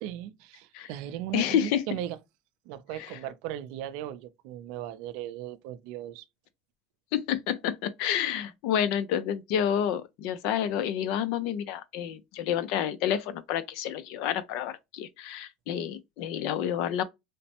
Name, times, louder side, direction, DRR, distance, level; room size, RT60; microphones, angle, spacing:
voice 1, 0.0-2.2 2.7-6.2, right 12 dB, 70° right, 0.4 m, -37 dB
voice 2, 1.3-1.8 3.0-3.1 7.1-17.0, left 9 dB, 70° left, 0.5 m, -29 dB
3.1 x 2.1 x 2.8 m
supercardioid pair, 120°, 0 cm